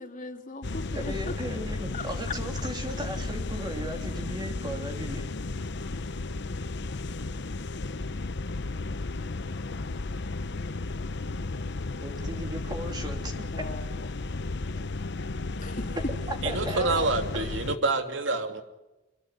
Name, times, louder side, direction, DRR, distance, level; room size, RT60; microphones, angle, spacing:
voice 1, 0.0-1.1 1.9-2.3 13.5-13.9 15.5-16.0, left 3 dB, 45° left, 3 dB, 3.1 m, -39 dB
sound 1, 0.6-17.8, left 3 dB, 65° left, 0.9 m, -34 dB
voice 2, 0.9-5.2 12.0-13.4 16.3-17.0, right 1 dB, 25° right, 3 dB, 2.9 m, -36 dB
voice 3, 16.4-18.6, right 3 dB, 80° right, 6 dB, 3.0 m, -27 dB
26.5 x 22.0 x 9.5 m, 1.0 s
head